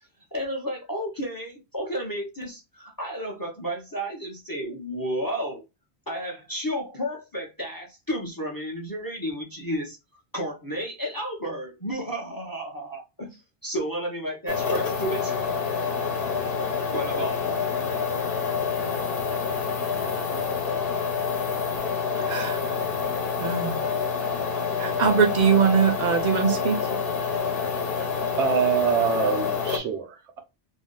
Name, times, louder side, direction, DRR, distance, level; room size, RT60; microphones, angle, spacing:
voice 1, 0.3-5.6 6.1-10.0 10.3-15.4 16.9-17.5, equal, 25° left, 0.5 m, -32 dB
sound 1, 14.5-29.8, left 5 dB, 60° left, 0.9 m, -27 dB
voice 2, 22.2-22.8 23.4-23.8 24.8-26.8, right 6 dB, 50° right, 0.6 m, -22 dB
voice 3, 28.4-30.4, right 7 dB, 85° right, 1.0 m, -25 dB
2.6 x 2.1 x 3.6 m
omnidirectional pair, 1.1 m